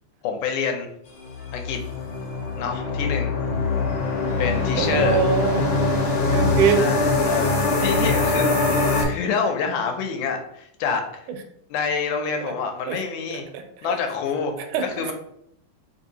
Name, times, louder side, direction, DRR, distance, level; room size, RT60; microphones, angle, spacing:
voice 1, 0.2-0.9 1.5-1.8 2.6-3.3 4.4-5.2 6.8-8.5 9.0-11.0 11.7-13.5 13.8-14.6 14.8-15.1, left 6 dB, 90° left, 4 dB, 2.0 m, -27 dB
sound 1, 1.2-9.0, left 3 dB, 70° left, 1.2 m, -23 dB
voice 2, 4.8-5.8 6.2-6.8 8.0-8.1 12.4-12.5 12.9-13.0 13.3-13.9 14.6-15.1, right 7 dB, 80° right, 6 dB, 1.9 m, -24 dB
4.6 x 2.6 x 2.8 m, 0.71 s
omnidirectional pair, 3.4 m